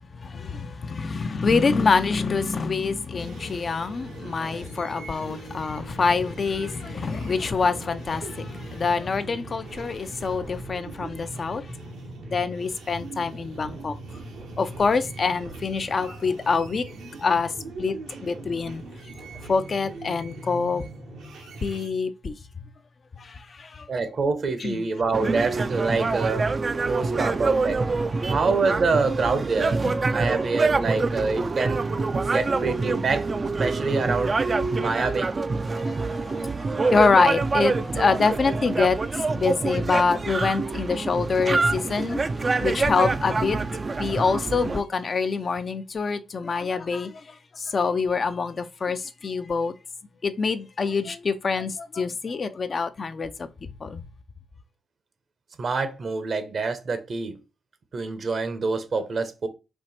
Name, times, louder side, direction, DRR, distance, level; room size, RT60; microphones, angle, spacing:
voice 1, 0.2-11.6 12.3-13.9 14.6-16.8 17.2-17.5 17.8-18.0 18.2-18.8 19.5-20.8 21.6-22.4 23.2-23.9 24.6-24.9 29.8-29.9 35.0-35.1 35.7-36.6 36.9-39.0 39.3-42.2 42.6-43.6 44.0-47.2 47.6-49.7 50.2-53.3 53.6-54.0, left 4 dB, 50° left, 0.5 m, -25 dB
sound 1, 3.2-21.9, right 2 dB, 85° right, 1.4 m, -40 dB
voice 2, 23.9-26.5 26.9-27.8 28.3-31.8 32.3-33.3 33.6-34.4 34.8-35.3 55.6-57.4 57.9-59.5, right 4 dB, 55° right, 1.0 m, -26 dB
sound 2, 25.1-44.8, right 3 dB, 40° right, 0.4 m, -26 dB
4.5 x 2.5 x 4.2 m
supercardioid pair, 55°, 0 cm